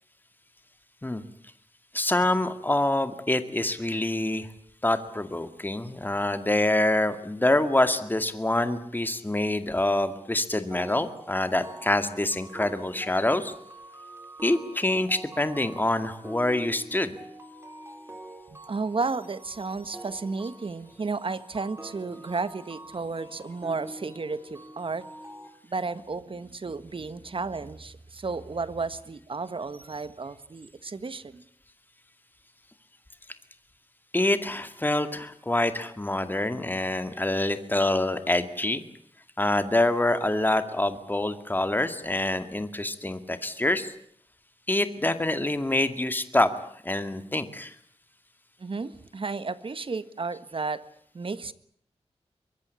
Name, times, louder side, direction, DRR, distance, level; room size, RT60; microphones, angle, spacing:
voice 1, 1.9-4.5 4.8-13.5 14.4-17.1 34.1-38.8 39.4-43.9 44.7-47.7, left 1 dB, 15° left, 9 dB, 2.2 m, -26 dB
sound 1, 10.7-25.5, right 1 dB, 25° right, 4.9 m, -46 dB
voice 2, 18.7-25.1 25.6-31.4 48.6-50.8 51.1-51.5, right 4 dB, 55° right, 14 dB, 1.5 m, -33 dB
24.0 x 21.5 x 8.3 m, 0.65 s
wide cardioid pair, 95°, 11 cm